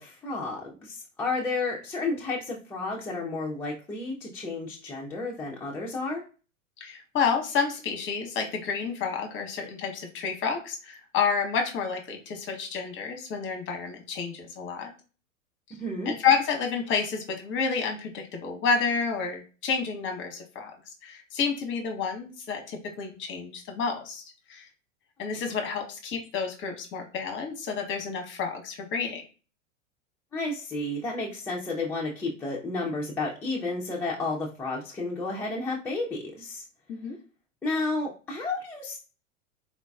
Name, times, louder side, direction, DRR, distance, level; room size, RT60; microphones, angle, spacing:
voice 1, 0.0-6.2 15.8-16.1 30.3-36.6 37.6-39.0, left 3 dB, 5° left, -4 dB, 0.3 m, -31 dB
voice 2, 6.8-14.9 16.1-20.7 21.0-24.2 24.5-24.7 25.2-29.2 36.9-37.2, left 5 dB, 30° left, 4 dB, 0.8 m, -29 dB
4.0 x 2.2 x 2.3 m, 0.35 s
hypercardioid pair, 95°, 39 cm